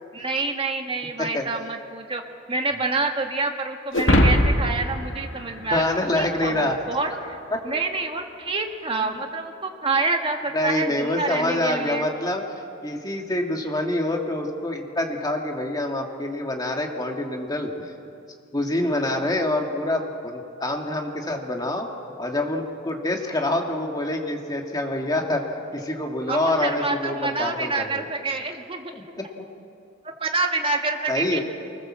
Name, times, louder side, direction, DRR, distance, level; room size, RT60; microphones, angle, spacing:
voice 1, 0.1-2.2 2.5-5.8 6.2-7.4 7.6-12.1 26.3-28.9 30.2-31.4, right 3 dB, 30° right, 3 dB, 1.7 m, -27 dB
sound 1, 3.9-6.5, left 1 dB, 80° left, 2.2 m, -21 dB
voice 2, 5.7-6.8 7.5-7.6 9.0-9.2 10.5-12.4 12.8-17.9 18.5-21.9 22.2-25.4 25.7-28.0 28.9-29.4 31.1-31.4, left 1 dB, 20° left, 2 dB, 2.1 m, -26 dB
24.5 x 19.5 x 7.5 m, 2.5 s
head